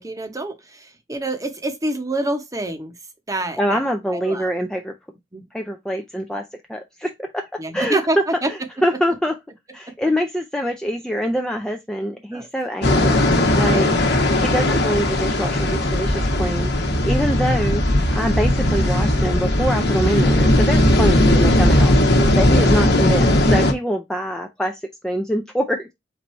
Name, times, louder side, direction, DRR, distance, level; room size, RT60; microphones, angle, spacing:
voice 1, 0.0-2.9 3.3-3.8 4.1-4.5 5.3-5.4 7.6-8.5 12.3-12.5 13.8-14.1 22.1-22.4, right 1 dB, 20° right, 0.8 m, -27 dB
voice 2, 3.6-4.9 5.5-7.5 7.7-9.3 9.7-14.0 14.3-17.8 18.1-25.9, equal, 5° left, 0.4 m, -24 dB
sound 1, 12.8-23.7, left 1 dB, 65° left, 1.0 m, -17 dB
4.6 x 2.6 x 4.2 m
head